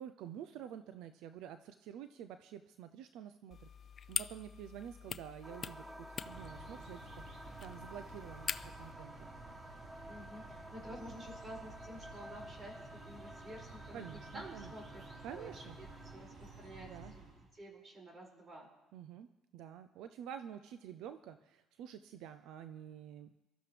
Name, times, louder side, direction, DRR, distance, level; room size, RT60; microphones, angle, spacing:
voice 1, 0.0-3.7 4.1-9.3 13.9-14.7 15.2-15.8 16.8-17.1 18.9-23.3, right 9 dB, 80° right, 11 dB, 0.5 m, -49 dB
sound 1, 3.5-8.9, left 7 dB, 45° left, 0.5 m, -44 dB
sound 2, 5.4-16.2, right 1 dB, 10° right, 0.6 m, -52 dB
sound 3, 6.1-17.5, right 2 dB, 60° right, 4.1 m, -53 dB
voice 2, 10.1-15.0 15.3-18.7, right 1 dB, 35° right, -2 dB, 5.7 m, -51 dB
23.5 x 13.0 x 3.4 m, 1.0 s
cardioid pair, 95°, 0 cm